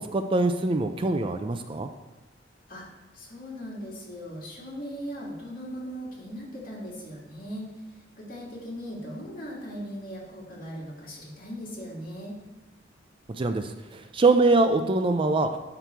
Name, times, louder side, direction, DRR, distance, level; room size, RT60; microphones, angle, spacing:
voice 1, 0.0-1.9 13.4-15.5, right 3 dB, 30° right, 7 dB, 0.4 m, -23 dB
voice 2, 3.1-7.7 8.2-12.4, equal, 50° left, -4 dB, 2.6 m, -38 dB
8.1 x 5.9 x 4.5 m, 1.1 s
head